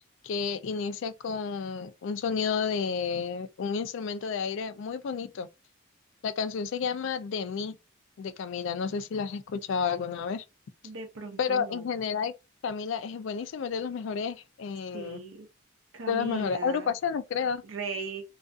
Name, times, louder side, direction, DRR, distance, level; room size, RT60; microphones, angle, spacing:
voice 1, 0.2-5.5 6.2-7.8 8.2-10.4 11.4-12.3 12.6-15.2 16.1-17.6, left 6 dB, 65° left, 0.3 m, -31 dB
voice 2, 10.8-11.9 14.9-15.5 15.9-16.9 17.6-18.2, right 4 dB, 70° right, 0.5 m, -38 dB
2.4 x 2.3 x 2.4 m
head